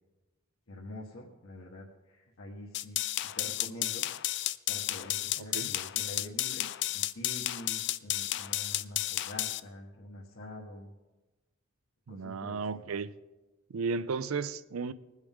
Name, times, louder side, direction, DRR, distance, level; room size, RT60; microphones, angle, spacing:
voice 1, 0.7-4.1 4.7-6.7 6.9-10.9 12.1-12.8, left 1 dB, 80° left, 1.4 m, -46 dB
sound 1, 2.7-9.6, left 14 dB, 60° left, 0.4 m, -32 dB
voice 2, 5.4-5.7 12.1-13.1 13.7-14.9, right 4 dB, 90° right, 0.5 m, -34 dB
21.0 x 8.1 x 3.6 m
head